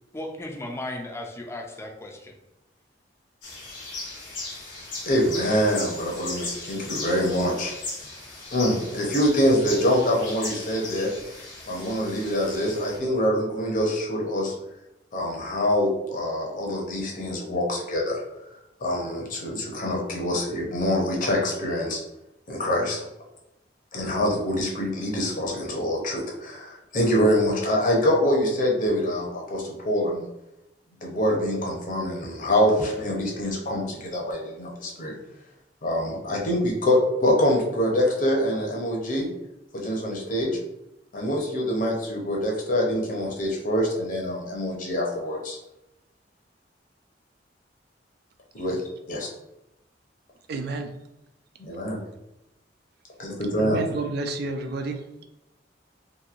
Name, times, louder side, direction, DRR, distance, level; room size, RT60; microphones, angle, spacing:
voice 1, 0.1-2.3, left 1 dB, 15° left, 2 dB, 0.4 m, -35 dB
sound 1, 3.4-13.0, left 3 dB, 90° left, 1.1 m, -37 dB
voice 2, 5.1-7.7 8.5-11.1 11.7-14.5 15.1-18.2 18.8-22.0 22.5-23.0 23.9-30.3 31.0-35.1 35.8-39.3 39.7-40.6 41.1-45.6 48.5-48.8 49.1-49.3 51.6-52.0 53.2-53.8, equal, 50° left, -1 dB, 0.7 m, -25 dB
voice 3, 50.5-50.9 53.6-55.0, right 3 dB, 60° right, 5 dB, 0.3 m, -30 dB
2.9 x 2.6 x 2.5 m, 0.91 s
head